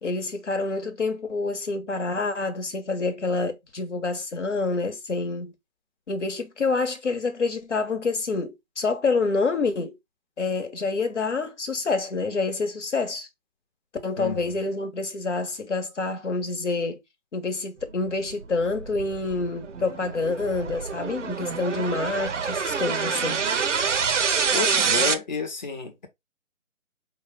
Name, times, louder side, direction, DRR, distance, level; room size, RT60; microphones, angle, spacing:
voice 1, 0.0-5.5 6.1-10.0 10.4-13.3 14.0-17.0 17.3-23.5, left 3 dB, 60° left, 1.2 m, -27 dB
sound 1, 18.2-25.1, right 6 dB, 65° right, 0.7 m, -26 dB
voice 2, 24.5-26.1, left 5 dB, 35° left, 1.0 m, -30 dB
4.8 x 2.3 x 3.5 m
figure-of-eight pair, 150°, 40 cm